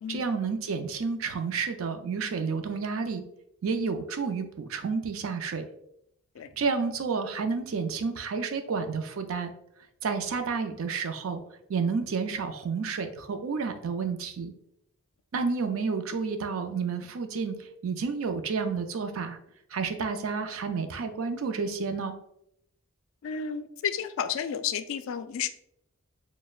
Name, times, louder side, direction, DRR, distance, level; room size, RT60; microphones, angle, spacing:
voice 1, 0.1-3.2 3.6-5.7 6.6-9.5 10.0-11.4 11.7-14.5 15.3-19.4 19.7-22.2, right 5 dB, 80° right, 7 dB, 0.5 m, -30 dB
voice 2, 23.2-25.5, left 7 dB, 75° left, 11 dB, 0.3 m, -32 dB
6.2 x 2.1 x 2.4 m, 0.77 s
head